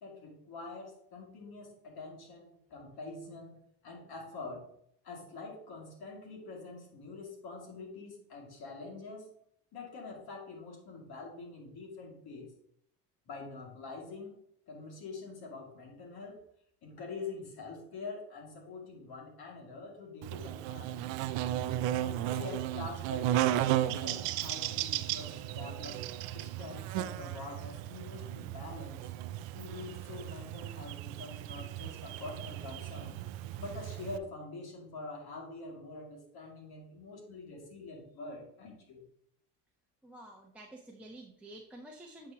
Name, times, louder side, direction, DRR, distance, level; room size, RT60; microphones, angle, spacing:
voice 1, 0.0-4.7 5.0-9.3 9.7-12.5 13.3-14.4 14.7-16.4 16.8-21.1 22.0-26.0 26.3-29.1 29.5-33.2 33.6-39.0, left 3 dB, 50° left, 1 dB, 2.4 m, -45 dB
Buzz, 20.2-34.2, right 13 dB, 65° right, 0.5 m, -35 dB
voice 2, 40.0-42.3, right 1 dB, 5° right, 0 dB, 0.9 m, -50 dB
8.3 x 4.9 x 2.9 m, 0.70 s
supercardioid pair, 100°, 48 cm